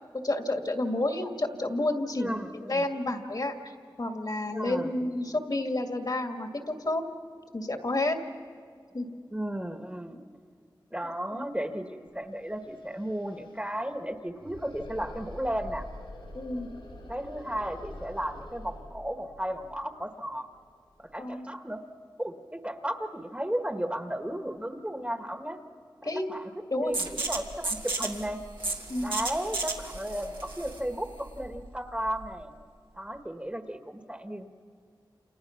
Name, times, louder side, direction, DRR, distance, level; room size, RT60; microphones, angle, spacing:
voice 1, 0.2-2.4 2.7-3.7 4.0-7.0 7.5-8.2 8.9-9.1 11.3-11.5 16.3-16.7 21.2-21.5 26.0-26.2 26.7-26.9 28.9-29.2, left 2 dB, 55° left, 4 dB, 2.2 m, -30 dB
voice 2, 2.2-2.9 4.5-4.9 9.3-10.2 10.9-15.8 17.1-20.5 21.0-21.8 22.2-25.6 26.0-28.4 29.0-32.5 32.9-34.5, right 1 dB, 15° right, 6 dB, 1.6 m, -34 dB
sound 1, 12.1-12.2 12.4-21.2, left 1 dB, 85° left, 7.3 m, -46 dB
sound 2, 26.9-32.4, right 3 dB, 80° right, 2.4 m, -34 dB
28.5 x 28.5 x 5.9 m, 2.1 s
wide cardioid pair, 50°, 8 cm